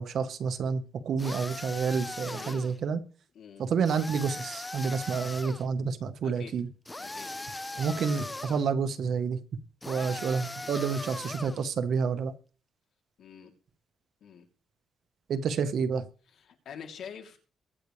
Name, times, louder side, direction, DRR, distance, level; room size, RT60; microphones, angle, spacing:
voice 1, 0.0-3.0 3.6-6.7 7.8-9.4 9.9-12.3 15.3-16.0, right 6 dB, 60° right, 1.3 m, -29 dB
sound 1, 1.2-2.8 3.8-5.6 6.9-8.7 9.8-11.6, left 2 dB, 15° left, 0.8 m, -39 dB
voice 2, 2.3-2.6 3.3-3.6 6.2-6.5 7.0-7.3 9.9-10.2 13.2-13.5 14.2-14.5 16.3-17.4, left 7 dB, 65° left, 3.2 m, -46 dB
22.5 x 8.4 x 3.4 m
cardioid pair, 120°, 0 cm